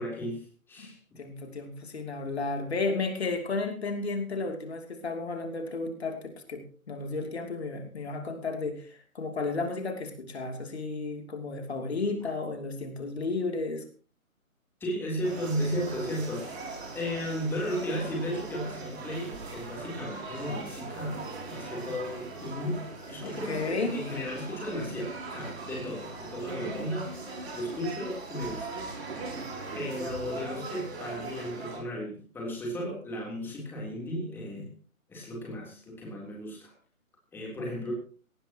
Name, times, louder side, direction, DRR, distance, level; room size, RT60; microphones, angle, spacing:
voice 1, 0.0-1.2 14.8-27.1 27.5-28.8 29.7-34.7 35.1-36.7 37.3-37.9, equal, 5° left, -2 dB, 3.4 m, -35 dB
voice 2, 1.2-13.8 23.2-24.0 37.6-37.9, left 3 dB, 50° left, 4 dB, 3.0 m, -33 dB
sound 1, 15.2-31.8, right 3 dB, 45° right, 6.8 m, -40 dB
18.5 x 18.0 x 3.0 m, 0.40 s
figure-of-eight pair, 145°, 42 cm